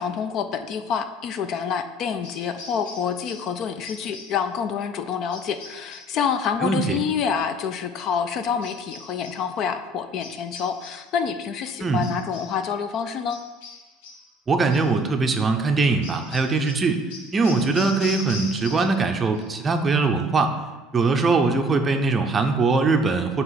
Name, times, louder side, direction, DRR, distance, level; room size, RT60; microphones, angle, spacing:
voice 1, 0.0-13.4, left 7 dB, 45° left, 9 dB, 0.4 m, -27 dB
sound 1, 2.2-3.6 3.8-4.5 5.3-6.2 8.6-9.5 10.2-11.1 12.0-12.6 13.3-14.3 14.7-15.0 16.0-19.1 19.3-19.8, left 3 dB, 80° left, 1.3 m, -41 dB
voice 2, 6.6-7.0 11.8-12.0 14.5-17.0 17.3-20.5 20.9-23.4, right 3 dB, 20° right, 5 dB, 0.5 m, -21 dB
7.9 x 3.0 x 5.7 m, 1.2 s
supercardioid pair, 145°, 0 cm